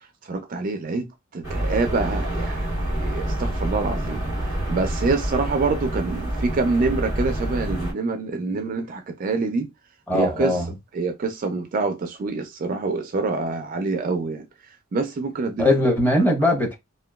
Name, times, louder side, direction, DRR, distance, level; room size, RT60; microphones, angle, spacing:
voice 1, 0.3-1.1 1.3-4.2 4.7-9.7 10.1-10.5 10.9-14.4 14.9-15.7 16.2-16.3, right 3 dB, 40° right, 0.3 m, -26 dB
sound 1, 1.4-7.9, right 1 dB, 70° left, 1.7 m, -27 dB
voice 2, 10.1-10.7 15.6-16.7, left 1 dB, 10° left, 0.7 m, -20 dB
2.8 x 2.2 x 2.2 m
head